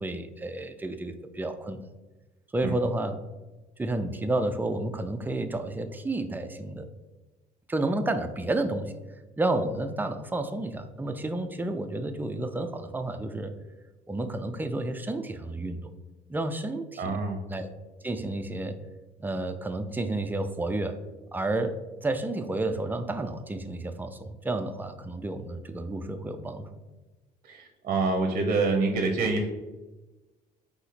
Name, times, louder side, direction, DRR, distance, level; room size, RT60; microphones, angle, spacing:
voice 1, 0.0-1.8 2.5-3.2 3.8-6.9 7.7-8.9 9.4-13.5 14.1-15.8 16.3-17.2 17.5-17.7 18.0-18.8 19.2-21.0 21.3-26.8, right 2 dB, 10° right, 7 dB, 0.4 m, -31 dB
voice 2, 17.0-17.4 27.4-29.5, right 3 dB, 45° right, 3 dB, 0.7 m, -26 dB
4.1 x 2.8 x 4.0 m, 1.1 s
cardioid pair, 110°, 17 cm